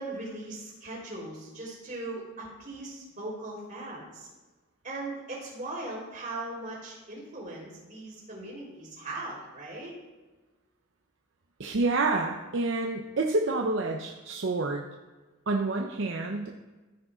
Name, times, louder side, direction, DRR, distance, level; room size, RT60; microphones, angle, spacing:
voice 1, 0.0-4.3 4.8-9.9, right 2 dB, 40° right, -4 dB, 3.7 m, -39 dB
voice 2, 11.6-14.8 15.5-16.5, right 3 dB, 65° right, 1 dB, 0.7 m, -28 dB
14.0 x 4.9 x 5.0 m, 1.2 s
head